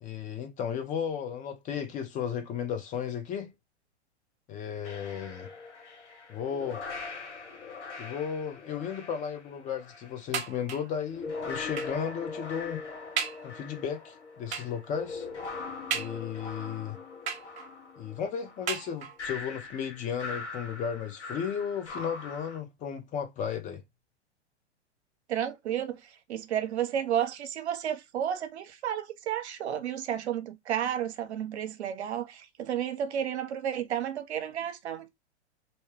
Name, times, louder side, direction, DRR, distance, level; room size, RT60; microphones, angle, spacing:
voice 1, 0.0-3.5 4.5-5.5 6.3-6.8 8.0-12.8 13.4-15.3 15.9-17.0 18.0-23.8, left 8 dB, 25° left, 0.6 m, -34 dB
sound 1, 4.8-10.2 10.9-22.6, left 4 dB, 80° left, 1.0 m, -41 dB
sound 2, 10.3-11.0 11.8-12.1 12.6-12.7 13.2-13.5 14.5-14.9 15.9-16.5 17.3-17.9 18.7-19.3 20.2-20.3 20.6-20.7, right 7 dB, 20° right, 0.5 m, -35 dB
voice 2, 25.3-35.1, right 9 dB, 70° right, 0.7 m, -32 dB
2.7 x 2.2 x 3.2 m
hypercardioid pair, 105°, 34 cm